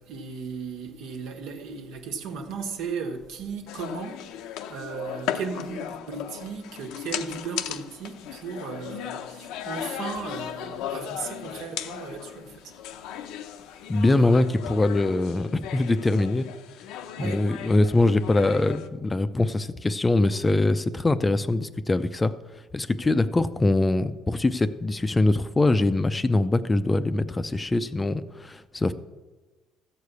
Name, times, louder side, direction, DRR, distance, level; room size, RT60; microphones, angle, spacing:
voice 1, 0.0-12.7 17.2-17.4 23.0-23.2, right 5 dB, 80° right, 1.5 m, -36 dB
sound 1, 3.7-18.9, left 10 dB, 85° left, 0.7 m, -37 dB
voice 2, 13.9-16.5 17.2-22.3 22.7-28.9, left 2 dB, 15° left, 0.5 m, -23 dB
14.0 x 4.9 x 8.2 m
cardioid pair, 115°, 0 cm